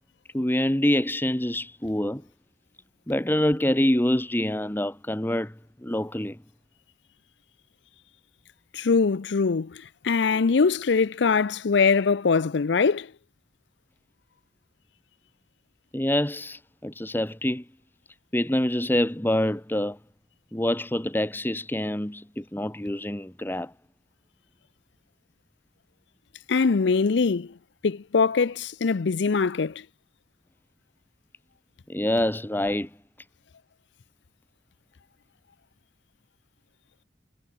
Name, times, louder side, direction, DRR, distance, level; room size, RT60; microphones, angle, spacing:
voice 1, 0.3-2.2 3.1-5.5 5.8-6.4 15.9-17.6 18.3-20.0 20.5-23.7 31.9-32.9, left 1 dB, 10° left, 1.2 m, -26 dB
voice 2, 8.7-9.7 10.0-13.1 26.5-27.5 27.8-29.7, left 5 dB, 65° left, 0.5 m, -22 dB
head